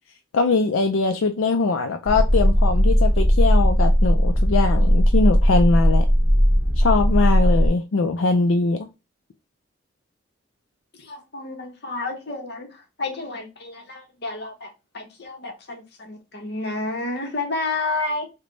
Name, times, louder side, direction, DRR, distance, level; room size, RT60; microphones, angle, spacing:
voice 1, 0.3-6.1 6.8-8.9, left 3 dB, 80° left, 0.4 m, -21 dB
sound 1, 2.1-7.7, equal, 10° left, 0.8 m, -17 dB
voice 2, 11.0-18.3, left 2 dB, 55° left, 0.9 m, -30 dB
3.2 x 2.2 x 3.8 m
head